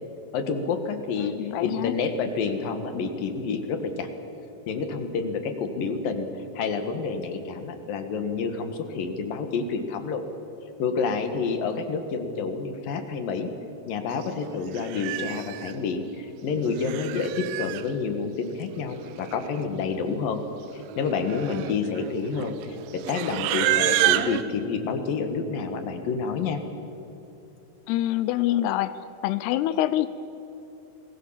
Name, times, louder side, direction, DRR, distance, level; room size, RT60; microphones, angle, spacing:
voice 1, 0.3-1.3 1.6-4.1 4.7-6.3 6.5-10.2 10.8-13.5 13.9-20.4 20.7-26.6, left 5 dB, 60° left, 7 dB, 2.8 m, -29 dB
voice 2, 1.4-2.0 27.9-30.1, left 13 dB, 85° left, 13 dB, 2.3 m, -25 dB
Livestock farm animals working animals, 14.2-14.4 14.7-15.7 16.6-17.9 18.9-19.0 19.2-19.6 19.9-20.2 20.8-24.4, right 14 dB, 80° right, 3.2 m, -28 dB
28.0 x 20.5 x 7.4 m, 2.9 s
omnidirectional pair, 5.4 m